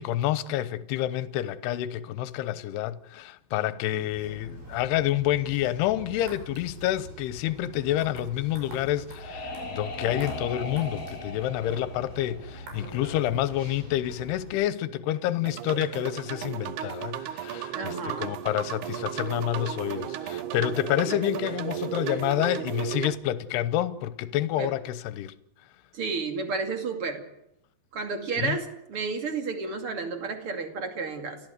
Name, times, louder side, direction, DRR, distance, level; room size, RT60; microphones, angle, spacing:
voice 1, 0.0-25.3 28.4-28.6, left 13 dB, 75° left, 2.9 m, -28 dB
sound 1, 4.1-14.5, right 1 dB, 65° right, 7.4 m, -44 dB
sound 2, 9.1-13.2, left 2 dB, 40° left, 1.5 m, -38 dB
sound 3, 15.5-23.2, right 11 dB, 90° right, 1.7 m, -34 dB
voice 2, 17.7-18.3 21.0-21.1 24.6-24.7 25.9-27.2 27.9-31.4, right 4 dB, 40° right, 2.7 m, -32 dB
29.5 x 14.5 x 8.1 m
omnidirectional pair, 5.0 m